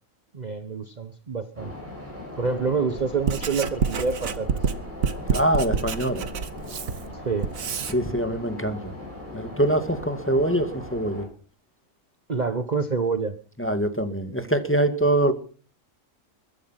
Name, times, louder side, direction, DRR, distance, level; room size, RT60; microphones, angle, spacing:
voice 1, 0.3-1.7 2.4-4.6 7.2-7.5 12.3-13.3, right 4 dB, 35° right, 9 dB, 1.1 m, -27 dB
sound 1, 1.5-11.3, left 2 dB, 10° right, 6.2 m, -39 dB
Writing, 3.0-8.0, right 6 dB, 85° right, 1.6 m, -28 dB
voice 2, 5.3-6.3 7.9-8.9 9.3-11.3 13.6-15.3, right 1 dB, 10° left, 8 dB, 1.9 m, -24 dB
22.0 x 10.5 x 5.8 m, 0.42 s
omnidirectional pair, 1.4 m